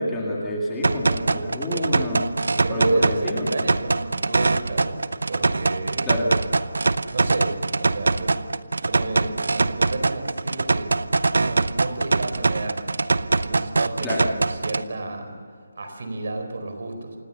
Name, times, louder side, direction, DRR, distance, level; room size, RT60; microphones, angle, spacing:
voice 1, 0.0-2.3 2.7-3.5 6.1-6.3 14.0-14.2, equal, 5° left, -5 dB, 2.2 m, -26 dB
sound 1, 0.8-14.8, right 3 dB, 85° right, 0.8 m, -23 dB
voice 2, 2.5-6.2 7.1-8.4 8.8-11.0 11.3-12.9 13.4-15.4 15.8-17.1, right 2 dB, 50° right, 6 dB, 4.3 m, -32 dB
28.0 x 18.0 x 6.9 m, 2.2 s
hypercardioid pair, 180°, 0 cm